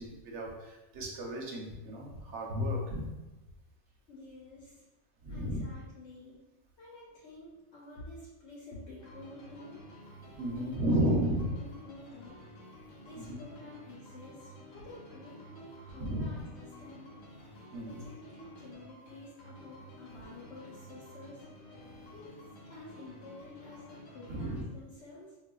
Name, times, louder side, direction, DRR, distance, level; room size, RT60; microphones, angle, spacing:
voice 1, 0.0-3.1 5.2-5.6 10.4-11.5 13.2-13.4 16.0-16.2 17.7-18.0 24.3-24.6, equal, 65° right, -1 dB, 0.9 m, -33 dB
voice 2, 3.9-4.8 5.3-6.4 6.8-9.8 10.5-12.5 13.0-17.1 17.5-21.5 22.1-25.4, left 2 dB, 60° left, -6 dB, 1.0 m, -50 dB
sound 1, 9.0-24.6, equal, 80° left, 1.2 m, -52 dB
3.8 x 2.5 x 2.2 m, 1.1 s
omnidirectional pair, 1.4 m